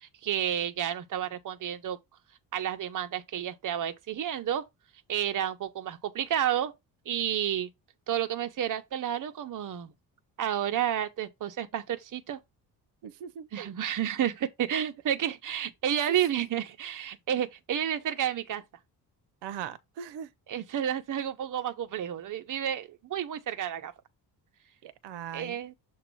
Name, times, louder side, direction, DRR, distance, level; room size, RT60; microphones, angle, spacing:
voice 1, 0.0-2.0 2.5-4.6 5.1-6.7 7.1-7.7 8.1-9.9 10.4-12.4 13.5-18.6 20.5-23.9 25.3-25.7, right 10 dB, 50° right, 1.0 m, -31 dB
voice 2, 13.0-13.7 19.4-20.3 24.8-25.6, right 9 dB, 85° right, 0.7 m, -40 dB
7.0 x 2.9 x 5.4 m
cardioid pair, 120°, 41 cm